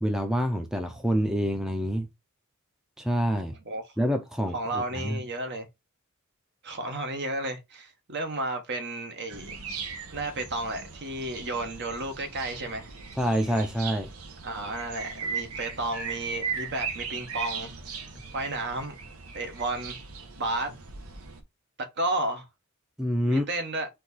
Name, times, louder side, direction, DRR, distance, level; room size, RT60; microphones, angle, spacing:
voice 1, 0.0-2.1 3.0-3.5 4.0-5.2 13.2-14.1 23.0-23.4, equal, 5° right, 0.6 m, -27 dB
voice 2, 4.5-5.7 6.6-9.5 10.1-12.9 14.4-17.7 18.3-18.9 19.3-20.0 20.4-20.7 21.8-22.5 23.2-23.9, right 2 dB, 55° right, 1.2 m, -32 dB
sound 1, 9.3-21.4, right 5 dB, 80° right, 1.1 m, -38 dB
4.4 x 2.8 x 4.0 m
head